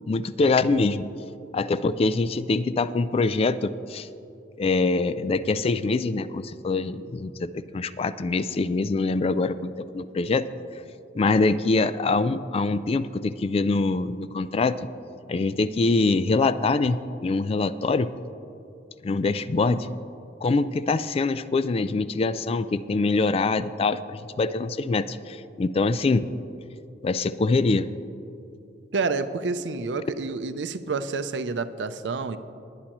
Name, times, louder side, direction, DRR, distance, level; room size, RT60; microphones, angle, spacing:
voice 1, 0.1-1.1 1.5-4.1 4.6-10.5 11.1-14.8 15.3-18.1 19.0-19.9 20.4-26.3 27.0-27.9, left 3 dB, 35° left, 14 dB, 0.3 m, -24 dB
voice 2, 28.9-32.4, right 4 dB, 90° right, 11 dB, 0.6 m, -28 dB
19.5 x 9.9 x 3.0 m, 2.7 s
head